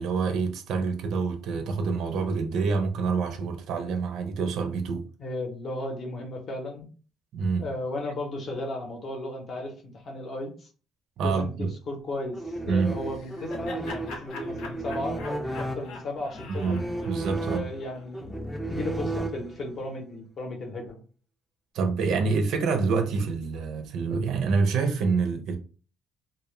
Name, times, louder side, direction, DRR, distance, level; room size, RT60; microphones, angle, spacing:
voice 1, 0.0-5.1 7.3-7.7 11.2-11.7 12.7-12.9 16.5-16.8 17.1-17.7 21.7-25.6, right 4 dB, 75° right, 0.4 m, -27 dB
voice 2, 5.2-6.9 7.6-10.7 11.2-16.8 17.4-18.4 18.7-21.0, left 2 dB, 45° left, 0.7 m, -35 dB
sound 1, 12.3-19.8, right 2 dB, ahead, 0.3 m, -34 dB
Laughter, 12.8-18.0, left 3 dB, 90° left, 0.5 m, -43 dB
2.1 x 2.1 x 3.0 m
cardioid pair, 145°, 0 cm